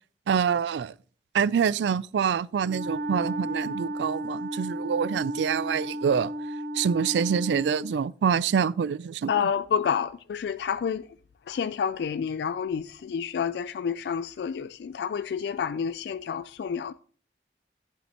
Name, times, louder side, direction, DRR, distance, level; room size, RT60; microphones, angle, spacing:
voice 1, 0.3-0.9 1.3-6.3 6.7-9.5, right 7 dB, 85° right, 0.3 m, -26 dB
Wind instrument woodwind instrument, 2.6-8.0, right 1 dB, 65° right, 1.1 m, -33 dB
voice 2, 9.3-11.0 11.5-16.9, left 7 dB, 70° left, 0.3 m, -29 dB
11.0 x 8.8 x 2.9 m
head